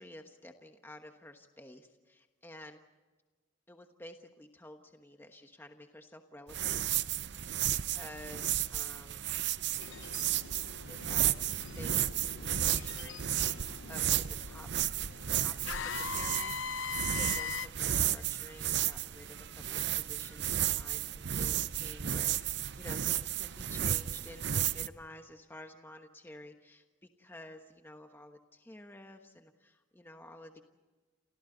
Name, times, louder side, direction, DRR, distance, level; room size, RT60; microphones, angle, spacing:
voice 1, 0.0-2.8 3.7-6.8 7.7-9.3 10.9-11.3 11.7-13.3 13.9-14.7 15.3-16.5 16.8-30.6, left 1 dB, 10° left, 5 dB, 1.2 m, -51 dB
sound 1, 6.5-24.9, right 11 dB, 60° right, 0.7 m, -33 dB
sound 2, 9.8-17.7, left 6 dB, 75° left, 0.7 m, -41 dB
29.5 x 28.5 x 4.0 m, 1.3 s
head